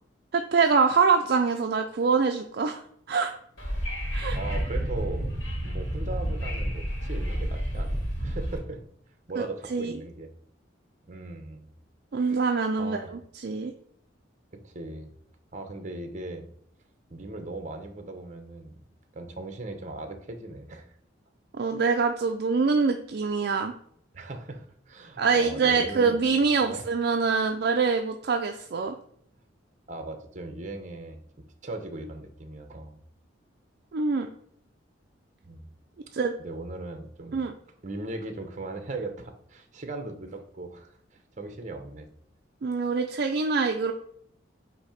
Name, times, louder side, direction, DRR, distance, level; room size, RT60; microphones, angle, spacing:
voice 1, 0.3-2.8 3.1-3.3 4.1-4.4 9.4-9.5 9.7-10.0 12.1-13.7 21.6-23.7 25.2-29.0 33.9-34.3 36.1-36.3 37.3-37.5 42.6-43.9, right 5 dB, 55° right, 4 dB, 0.4 m, -24 dB
Wind / Subway metro underground, 3.6-8.6, equal, 80° left, 1.8 m, -30 dB
voice 2, 4.3-5.3 5.6-8.8 9.3-10.3 11.0-11.7 12.2-12.5 12.8-13.1 14.6-15.1 15.5-16.5 17.1-18.7 19.1-20.9 24.1-26.9 29.9-31.2 31.6-33.0 35.4-35.7 36.4-37.4 37.8-42.1, right 2 dB, 40° right, 6 dB, 0.9 m, -38 dB
8.3 x 2.8 x 5.0 m, 0.66 s
head